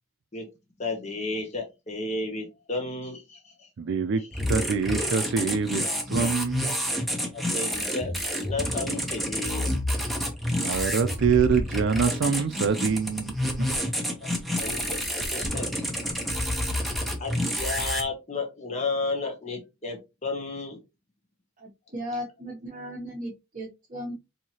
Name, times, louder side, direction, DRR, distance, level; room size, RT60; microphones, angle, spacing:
voice 1, 0.8-3.5 4.2-4.4 7.3-9.7 14.6-15.8 16.3-16.5 17.2-20.8, left 3 dB, 30° left, 0.9 m, -33 dB
voice 2, 3.8-4.2 4.5-5.8 6.1-6.7 10.6-13.9, right 5 dB, 60° right, 0.4 m, -25 dB
sound 1, 4.3-18.0, equal, ahead, 0.6 m, -29 dB
voice 3, 21.6-24.1, equal, 35° right, 0.9 m, -36 dB
4.4 x 2.7 x 2.8 m
head